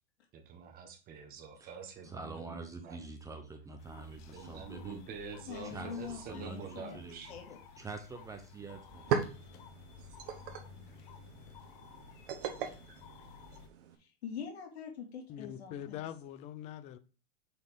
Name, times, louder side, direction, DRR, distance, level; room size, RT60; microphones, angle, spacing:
voice 1, 0.3-3.4 4.3-7.3, right 5 dB, 30° right, 1.4 m, -47 dB
voice 2, 2.0-5.0 5.6-6.7 6.9-7.4 7.8-9.1, right 4 dB, 10° right, 0.7 m, -45 dB
sound 1, 3.8-13.7, left 7 dB, 45° left, 1.2 m, -54 dB
voice 3, 5.5-7.0 7.3-7.6 14.0-16.0, left 7 dB, 85° left, 2.4 m, -44 dB
sound 2, 8.4-8.5 8.8-14.0, right 7 dB, 55° right, 1.2 m, -39 dB
voice 4, 15.3-17.0, left 11 dB, 20° left, 0.4 m, -43 dB
7.4 x 4.3 x 3.6 m
supercardioid pair, 140°, 31 cm